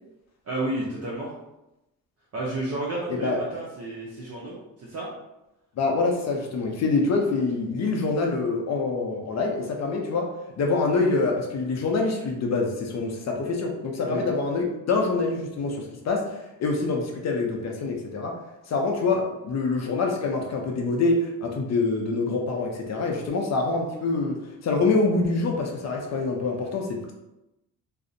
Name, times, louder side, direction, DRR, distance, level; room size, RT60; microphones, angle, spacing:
voice 1, 0.5-1.3 2.3-5.1 14.1-14.2, right 2 dB, 45° right, -5 dB, 0.6 m, -31 dB
voice 2, 5.8-10.3 10.6-18.4 18.7-24.4 24.6-27.1, left 3 dB, 50° left, 2 dB, 0.5 m, -25 dB
2.5 x 2.0 x 2.5 m, 0.93 s
cardioid pair, 95°, 36 cm